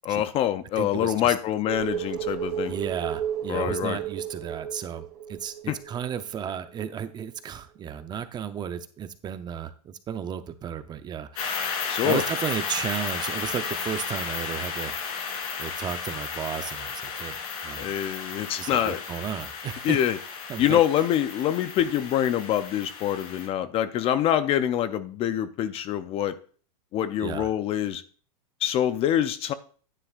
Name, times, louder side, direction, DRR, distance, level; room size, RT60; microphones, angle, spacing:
voice 1, 0.0-2.7 3.5-4.0 5.7-5.8 11.9-12.2 17.8-19.0 19.8-20.2 20.6-26.4 26.9-28.0 28.6-29.5, left 11 dB, 30° left, 0.5 m, -25 dB
voice 2, 0.8-1.3 2.7-11.7 12.0-15.2 15.6-17.9 18.6-20.0 20.5-20.8 27.2-27.5, right 8 dB, 20° right, 0.6 m, -34 dB
sound 1, 1.7-6.9 7.2-7.3, right 9 dB, 75° right, 1.8 m, -33 dB
sound 2, 11.4-23.5, left 6 dB, 70° left, 3.3 m, -34 dB
9.9 x 9.6 x 2.4 m
supercardioid pair, 135°, 20 cm